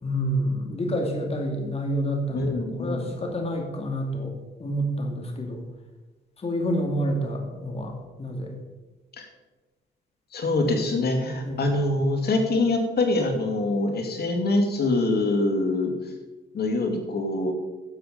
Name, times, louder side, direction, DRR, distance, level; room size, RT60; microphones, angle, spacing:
voice 1, 0.0-4.3 4.6-5.6 6.4-8.6 11.4-11.6, equal, 30° left, 2 dB, 2.3 m, -28 dB
voice 2, 2.3-3.1 9.2-9.3 10.3-15.9 16.5-17.5, left 2 dB, 55° left, 3 dB, 2.5 m, -24 dB
11.5 x 7.6 x 5.3 m, 1.2 s
cardioid pair, 90°, 20 cm